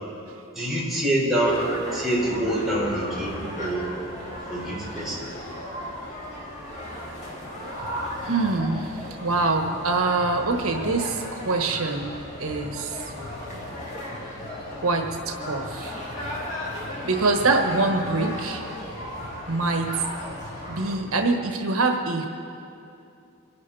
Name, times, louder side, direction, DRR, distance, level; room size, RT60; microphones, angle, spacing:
voice 1, 0.5-3.9 4.5-5.3, right 1 dB, ahead, -7 dB, 4.4 m, -25 dB
sound 1, 1.4-21.0, left 1 dB, 35° left, 4.8 m, -36 dB
voice 2, 8.2-13.0 14.6-16.0 17.0-18.6 19.5-20.0 20.7-22.3, right 3 dB, 90° right, 4 dB, 1.3 m, -25 dB
26.0 x 11.5 x 4.3 m, 2.6 s
head